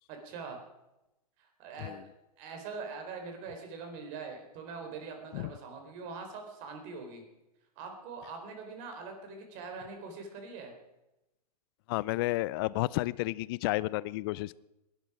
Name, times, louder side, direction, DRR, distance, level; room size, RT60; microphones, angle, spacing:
voice 1, 0.1-0.6 1.4-2.0 2.4-7.2 7.8-10.7, right 4 dB, 40° right, 4.1 m, -43 dB
voice 2, 11.9-14.6, left 19 dB, 35° left, 0.4 m, -31 dB
21.0 x 12.0 x 5.0 m
hypercardioid pair, 125°, 21 cm